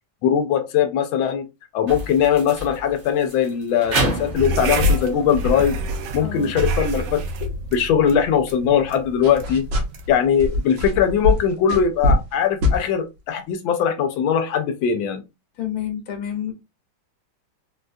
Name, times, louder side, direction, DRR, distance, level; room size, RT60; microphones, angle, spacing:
voice 1, 0.2-1.4 1.7-5.8 6.1-9.6 10.1-15.2, left 8 dB, 85° left, 1.4 m, -20 dB
sound 1, 1.9-7.3, right 2 dB, 50° right, 0.9 m, -31 dB
sound 2, 4.4-11.2, equal, 85° right, 1.5 m, -27 dB
voice 2, 6.2-6.5 15.6-16.5, left 10 dB, 60° left, 1.2 m, -28 dB
sound 3, 9.2-10.1 10.4-12.4 12.6-12.8, left 2 dB, 65° right, 1.6 m, -22 dB
3.9 x 2.2 x 2.5 m
omnidirectional pair, 2.1 m